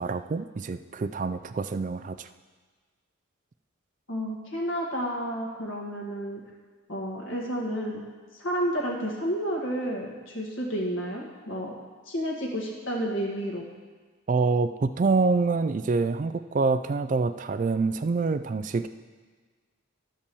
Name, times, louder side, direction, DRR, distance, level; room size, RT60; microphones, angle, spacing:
voice 1, 0.0-2.3 14.3-18.9, right 4 dB, 40° right, 12 dB, 0.3 m, -26 dB
voice 2, 4.1-6.4 6.9-8.0 8.3-11.7 12.1-13.7, equal, 70° left, -1 dB, 1.9 m, -31 dB
11.5 x 5.4 x 6.9 m, 1.5 s
head